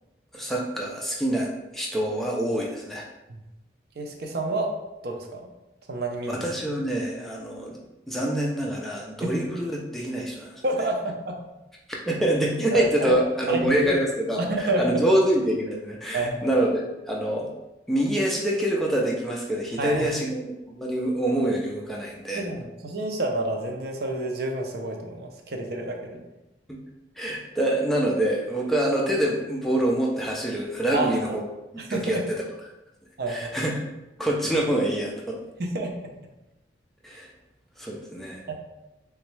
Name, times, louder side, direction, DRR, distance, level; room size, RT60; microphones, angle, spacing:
voice 1, 0.3-3.0 6.3-7.8 8.1-10.6 11.9-17.5 17.9-22.4 26.7-26.8 27.2-31.4 31.9-32.4 33.3-33.7 34.2-35.4 37.0-37.3 37.8-38.4, right 1 dB, ahead, -3 dB, 0.4 m, -26 dB
voice 2, 4.0-4.7 5.0-5.5 5.9-6.4 9.2-9.4 10.6-11.4 12.7-14.0 14.4-15.0 16.1-16.4 19.8-20.1 22.3-26.2 30.9-31.4 31.8-32.2 33.2-33.5 35.6-35.9 38.5-38.6, right 2 dB, 60° right, 2 dB, 0.5 m, -29 dB
3.4 x 3.0 x 3.2 m, 0.97 s
head